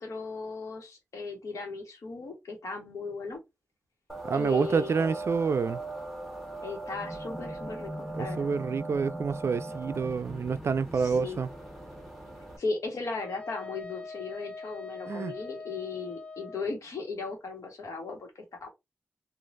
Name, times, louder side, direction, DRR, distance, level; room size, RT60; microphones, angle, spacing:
voice 1, 0.0-3.4 4.3-5.2 6.6-8.5 10.9-11.4 12.6-18.7, left 3 dB, 80° left, 1.2 m, -37 dB
sound 1, 4.1-12.6, right 1 dB, 5° left, 1.2 m, -39 dB
voice 2, 4.2-5.8 8.1-11.5 15.1-15.3, right 5 dB, 60° right, 0.3 m, -28 dB
Wind instrument woodwind instrument, 13.2-16.8, left 3 dB, 25° left, 0.4 m, -42 dB
3.2 x 2.4 x 2.5 m
cardioid pair, 55°, 5 cm